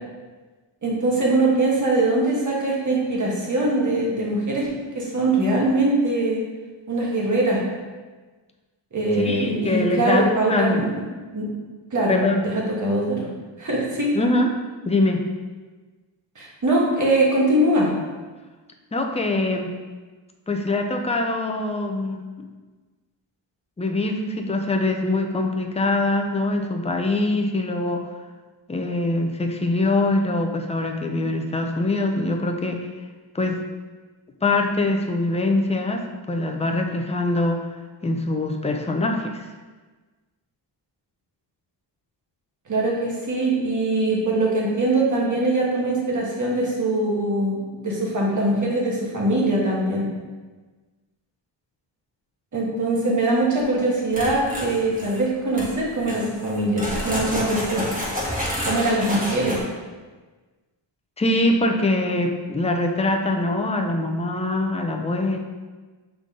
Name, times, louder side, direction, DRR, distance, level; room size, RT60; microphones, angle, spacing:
voice 1, 0.8-6.4 6.9-7.6 8.9-10.9 11.3-11.5 11.9-12.2 12.4-13.2 13.6-14.1 16.3-17.9 42.7-50.1 52.5-57.8 58.7-59.6, right 2 dB, 40° right, -4 dB, 1.4 m, -22 dB
voice 2, 9.2-10.8 12.1-12.4 14.1-14.5 14.8-15.3 18.9-19.7 20.5-22.3 23.8-28.0 28.7-32.9 33.3-33.6 34.4-37.6 38.0-39.5 61.2-65.4, left 2 dB, 15° left, 3 dB, 0.4 m, -23 dB
sound 1, 54.1-55.2 55.5-55.7 56.0-59.6, equal, 20° right, 1.3 m, -29 dB
6.9 x 3.8 x 3.7 m, 1.3 s
wide cardioid pair, 175°, 46 cm